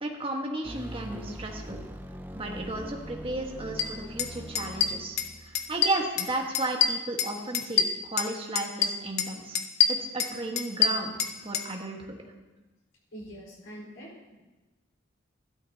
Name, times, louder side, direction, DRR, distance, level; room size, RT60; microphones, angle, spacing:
voice 1, 0.0-1.8 2.3-9.6 9.9-12.2, right 2 dB, 30° right, 1 dB, 1.4 m, -34 dB
sound 1, 0.6-5.9, equal, 10° right, 0.6 m, -42 dB
sound 2, 3.8-3.9 4.2-4.3 4.5-5.3 5.5-6.3 6.5-8.3 8.6-9.3 9.5-11.7, left 7 dB, 55° left, 0.9 m, -25 dB
voice 2, 13.1-14.3, equal, 80° left, -4 dB, 4.7 m, -44 dB
14.0 x 12.5 x 2.8 m, 1.1 s
head